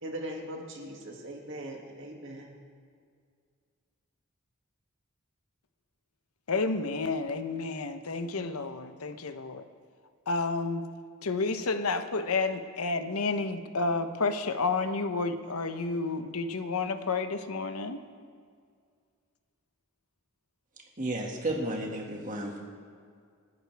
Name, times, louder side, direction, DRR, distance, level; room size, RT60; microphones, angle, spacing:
voice 1, 0.0-2.5, right 1 dB, 60° right, 0 dB, 2.2 m, -40 dB
voice 2, 6.5-9.6 10.3-10.8 11.2-18.0, left 3 dB, 85° left, 9 dB, 0.9 m, -30 dB
voice 3, 21.0-22.6, right 1 dB, 35° right, 0 dB, 2.0 m, -32 dB
28.5 x 9.6 x 3.5 m, 2.1 s
head